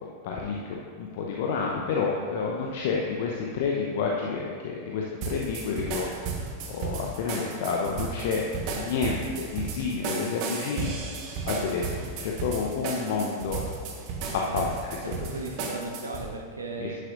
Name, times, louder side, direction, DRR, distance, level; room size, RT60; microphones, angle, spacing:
voice 1, 0.0-10.9 11.2-13.6 14.3-14.7 16.8-17.0, left 5 dB, 50° left, -1 dB, 0.8 m, -30 dB
sound 1, 5.2-16.3, right 5 dB, 45° right, 1.3 m, -34 dB
voice 2, 15.0-17.0, right 2 dB, 75° right, 1 dB, 1.0 m, -36 dB
11.0 x 10.0 x 2.6 m, 2.1 s
figure-of-eight pair, 90°, 0 cm